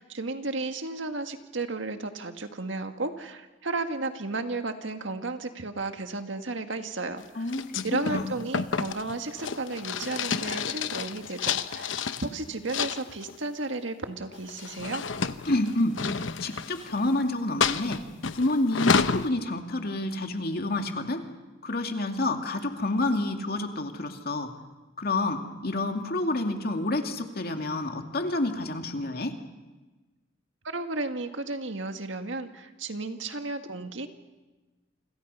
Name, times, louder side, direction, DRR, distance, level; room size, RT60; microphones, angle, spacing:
voice 1, 0.0-7.5 7.8-11.9 12.2-15.0 30.6-34.1, right 3 dB, 80° right, 6 dB, 1.9 m, -33 dB
voice 2, 7.4-8.4 15.5-15.9 16.4-18.0 18.3-21.2 21.6-24.5 25.0-29.3, left 2 dB, 55° left, 4 dB, 2.4 m, -28 dB
sound 1, 7.5-12.3 12.7-13.4 14.3-17.1 17.6-19.3, left 5 dB, 85° left, 0.9 m, -29 dB
29.0 x 26.5 x 5.6 m, 1.2 s
head